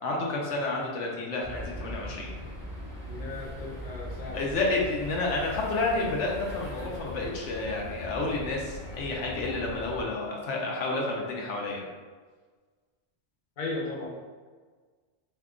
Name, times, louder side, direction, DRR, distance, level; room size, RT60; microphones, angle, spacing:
voice 1, 0.0-2.3 4.3-11.9, left 2 dB, 85° left, -2 dB, 0.9 m, -30 dB
sound 1, 1.4-10.0, equal, 5° left, 0.5 m, -40 dB
voice 2, 3.1-4.4 13.6-14.1, left 2 dB, 50° left, -4 dB, 0.9 m, -36 dB
2.7 x 2.3 x 3.5 m, 1.5 s
omnidirectional pair, 1.2 m